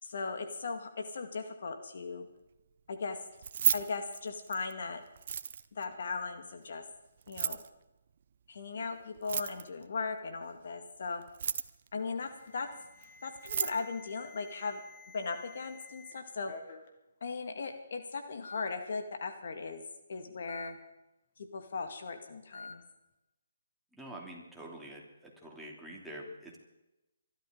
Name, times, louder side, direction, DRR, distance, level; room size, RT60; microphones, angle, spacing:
voice 1, 0.0-2.3 2.9-3.2 3.7-5.0 5.8-6.8 7.3-7.6 8.5-11.2 11.9-12.7 13.2-14.8 15.1-16.5 17.2-19.8 20.1-20.8 21.5-22.8, left 4 dB, 60° left, 6 dB, 2.1 m, -38 dB
Keys jangling, 3.3-4.7 5.2-5.8 7.2-7.7 9.2-9.8 11.2-11.9 13.0-13.1 13.3-13.8, right 8 dB, 50° right, 0.8 m, -32 dB
Alarm, 12.2-16.1 16.5-16.9 17.7-17.8 18.4-18.6 20.5-20.7 22.5-22.7, left 3 dB, 45° left, 2.8 m, -50 dB
voice 2, 24.0-25.0 25.4-26.6, right 1 dB, ahead, -3 dB, 3.0 m, -45 dB
24.0 x 13.0 x 3.9 m, 0.95 s
hypercardioid pair, 150°, 0 cm